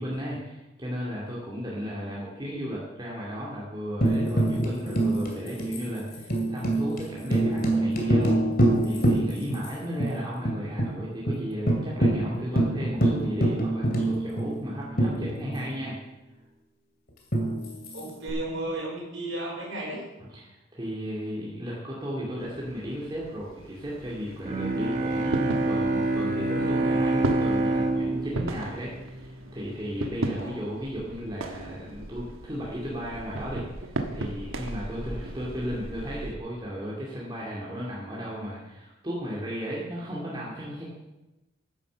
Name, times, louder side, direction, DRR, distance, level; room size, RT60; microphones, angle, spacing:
voice 1, 0.0-8.4 8.8-16.0 20.2-40.9, equal, 20° right, -6 dB, 2.2 m, -35 dB
Tambourine, 4.0-9.7 10.0-10.1 10.4-10.9 11.3-11.4 11.7-15.8 17.3-18.3, right 1 dB, 45° left, 2.5 m, -25 dB
voice 2, 17.9-20.0 30.3-30.7, right 2 dB, 70° right, -4 dB, 4.9 m, -34 dB
sound 1, 22.4-36.4, right 2 dB, 90° right, 1.2 m, -36 dB
Bowed string instrument, 24.4-29.7, right 2 dB, 40° right, 1.8 m, -27 dB
10.0 x 9.9 x 6.8 m, 1.0 s
head